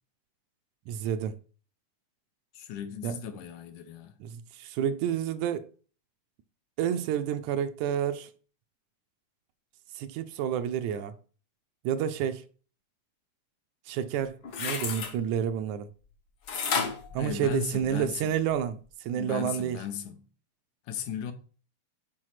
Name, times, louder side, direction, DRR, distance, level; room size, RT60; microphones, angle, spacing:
voice 1, 0.9-1.4 3.0-3.2 4.2-5.7 6.8-8.3 9.9-11.1 11.8-12.4 13.9-15.9 17.1-19.8, right 9 dB, 80° right, 1.9 m, -30 dB
voice 2, 2.5-4.1 17.2-18.3 19.2-20.2 20.9-21.3, left 8 dB, 80° left, 2.2 m, -36 dB
sound 1, 14.2-15.1 16.5-18.0 18.5-18.6, left 5 dB, 60° left, 1.1 m, -32 dB
6.3 x 5.0 x 5.7 m
omnidirectional pair, 3.6 m